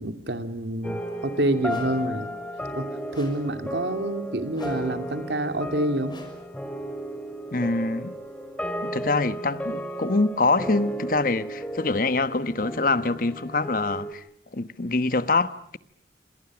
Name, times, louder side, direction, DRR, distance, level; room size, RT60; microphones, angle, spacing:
voice 1, 0.0-2.3 2.7-2.9 3.1-6.2, right 1 dB, 80° right, 2.6 m, -27 dB
sound 1, 0.8-14.1, equal, 5° left, 2.6 m, -34 dB
sound 2, 1.7-2.1 3.1-3.6 4.5-5.0 6.1-6.6, left 1 dB, 25° left, 6.2 m, -46 dB
voice 2, 7.5-8.1 8.8-14.2 14.5-15.8, left 3 dB, 50° left, 1.2 m, -25 dB
28.0 x 27.0 x 6.2 m
head